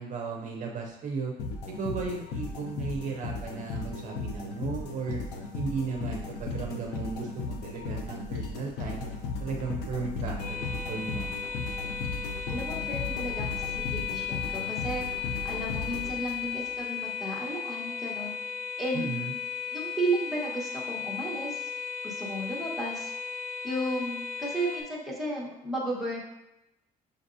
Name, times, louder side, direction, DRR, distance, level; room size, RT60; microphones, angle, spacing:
voice 1, 0.0-1.3 1.8-5.2 5.5-9.1 9.4-11.3 18.9-19.3, right 4 dB, 45° right, 0 dB, 0.6 m, -35 dB
sound 1, 1.4-16.7, left 3 dB, 85° left, 0.6 m, -36 dB
sound 2, 10.4-24.8, left 7 dB, 40° left, 1.2 m, -35 dB
voice 2, 12.5-13.5 13.8-15.1 15.4-18.3 18.8-19.3 19.7-21.7 22.0-23.1 23.6-26.2, right 1 dB, ahead, -5 dB, 1.1 m, -33 dB
6.5 x 2.6 x 2.6 m, 0.90 s
cardioid pair, 110°, 17 cm